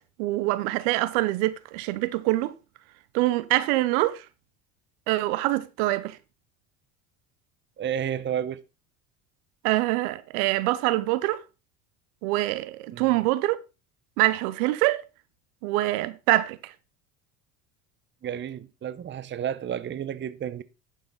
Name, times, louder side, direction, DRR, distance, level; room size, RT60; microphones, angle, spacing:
voice 1, 0.2-2.5 3.1-4.2 5.1-6.2 9.6-11.4 12.2-13.6 14.2-15.1 15.6-16.7, right 17 dB, 75° right, 0.8 m, -25 dB
voice 2, 7.8-8.6 12.9-13.3 18.2-20.6, right 9 dB, 25° right, 0.7 m, -31 dB
11.0 x 6.2 x 4.0 m
hypercardioid pair, 85°, 45 cm